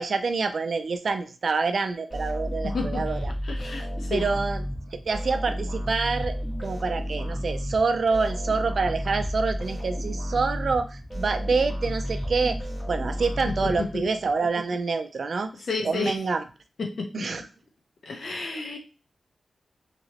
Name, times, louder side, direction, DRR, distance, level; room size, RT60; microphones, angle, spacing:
voice 1, 0.0-3.3 4.1-4.6 5.1-6.3 6.6-12.6 12.9-15.5 15.8-16.4 17.1-17.5, right 4 dB, 60° right, 8 dB, 0.4 m, -26 dB
sound 1, 2.1-14.3, equal, 25° left, 1.4 m, -32 dB
voice 2, 3.4-4.2 13.8-13.9 15.7-16.1 16.8-17.0 18.1-18.8, left 4 dB, 70° left, 1 dB, 0.8 m, -31 dB
3.0 x 2.8 x 2.9 m, 0.32 s
wide cardioid pair, 100°, 0 cm